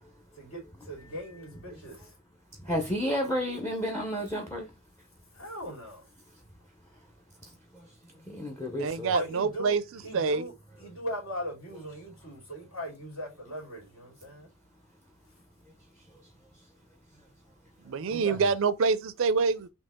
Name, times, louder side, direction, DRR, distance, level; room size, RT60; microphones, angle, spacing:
voice 1, 0.3-2.1 2.7-2.8 5.3-6.1 9.1-14.5 18.1-18.4, equal, 70° left, 2.7 m, -39 dB
voice 2, 2.6-4.7 7.4-9.1 16.1-16.2 17.9-18.4, equal, 10° left, 0.7 m, -33 dB
voice 3, 8.8-10.5 17.8-19.7, right 5 dB, 60° right, 0.4 m, -26 dB
4.3 x 2.9 x 3.6 m
head